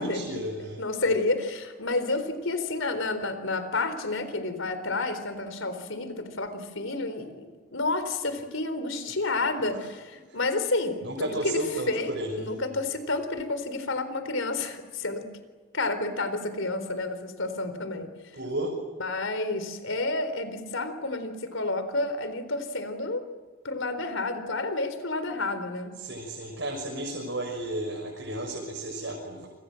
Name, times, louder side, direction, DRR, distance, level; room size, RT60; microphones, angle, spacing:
voice 1, 0.0-0.8 9.8-9.9 10.3-10.4 11.0-12.5 18.3-18.7 26.0-29.5, right 1 dB, 55° right, 0 dB, 6.3 m, -33 dB
voice 2, 0.8-11.6 11.9-12.1 12.4-15.2 15.7-18.1 19.0-23.2 23.6-25.9, left 2 dB, 70° left, 10 dB, 4.0 m, -30 dB
29.0 x 25.0 x 7.8 m, 1.4 s
head